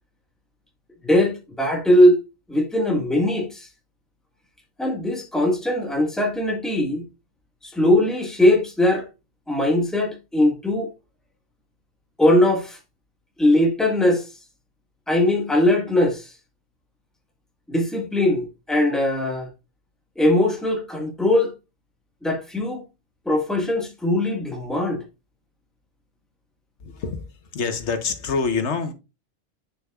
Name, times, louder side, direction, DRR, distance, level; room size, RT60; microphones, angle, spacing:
voice 1, 1.0-2.2 2.5-3.7 4.8-7.0 7.6-9.0 9.5-10.9 12.2-12.8 13.4-14.3 15.1-16.3 17.7-19.5 20.2-21.5 22.2-22.8 23.2-25.0, left 1 dB, ahead, 1.4 m, -20 dB
voice 2, 26.8-27.3 27.5-28.9, left 5 dB, 85° left, 1.3 m, -26 dB
7.3 x 6.7 x 2.3 m
omnidirectional pair, 1.1 m